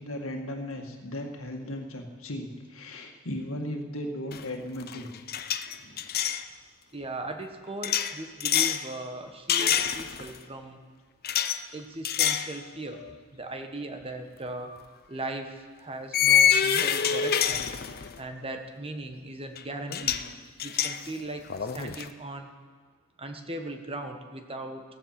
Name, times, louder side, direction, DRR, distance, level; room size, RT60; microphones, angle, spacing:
voice 1, 0.0-5.1 5.8-6.1, left 1 dB, 70° left, 2 dB, 2.0 m, -36 dB
sound 1, 4.3-4.5 4.8-6.4 7.8-8.8 9.5-10.4 11.2-11.6 12.0-12.5 13.0-13.1 14.6-14.8 16.1-18.2 19.6-19.7 19.9-20.3 20.6-22.1, left 9 dB, 45° left, 0.6 m, -26 dB
voice 2, 6.9-10.8 11.7-13.0 13.3-14.7 15.1-17.7 18.2-20.3 20.6-21.4 21.7-22.5 23.2-24.8, right 2 dB, 25° right, 5 dB, 1.3 m, -38 dB
16.0 x 14.5 x 5.9 m, 1.5 s
head